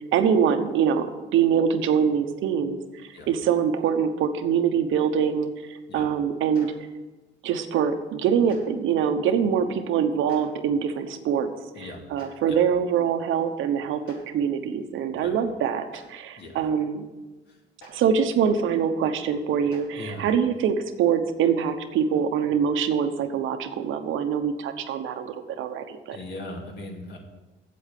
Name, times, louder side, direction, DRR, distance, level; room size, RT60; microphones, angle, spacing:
voice 1, 0.1-2.8 3.3-5.5 5.9-6.7 7.4-11.5 11.8-11.9 12.1-17.0 17.9-26.2, right 7 dB, 85° right, 8 dB, 1.0 m, -24 dB
Clapping, 6.5-6.7 8.5-8.6 10.3-10.4 12.2-12.3 14.0-14.2 15.9-16.0 17.8-17.9 19.7-19.8, equal, 80° left, 4.3 m, -46 dB
voice 2, 16.4-16.7 17.5-17.6 19.9-20.3 26.1-27.2, left 1 dB, 60° left, 1 dB, 2.5 m, -39 dB
8.5 x 7.8 x 7.6 m, 1.2 s
cardioid pair, 90°, 20 cm